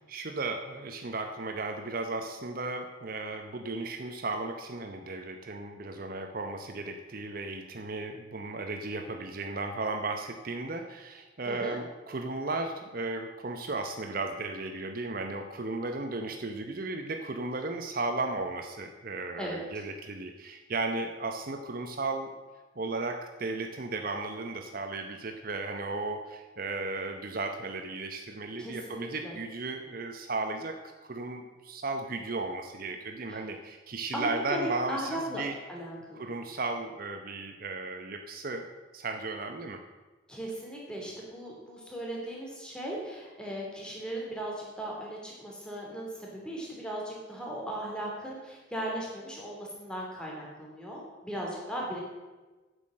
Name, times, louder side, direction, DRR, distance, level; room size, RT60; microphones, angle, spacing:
voice 1, 0.0-22.3 22.8-35.6 36.1-38.7 38.9-39.8, right 3 dB, 50° right, 6 dB, 0.8 m, -35 dB
voice 2, 11.4-11.8 19.4-19.6 28.6-29.4 33.3-33.5 34.1-35.4 35.7-36.3 40.3-52.0, right 1 dB, 5° left, -3 dB, 3.1 m, -37 dB
9.7 x 8.1 x 7.6 m, 1.2 s
head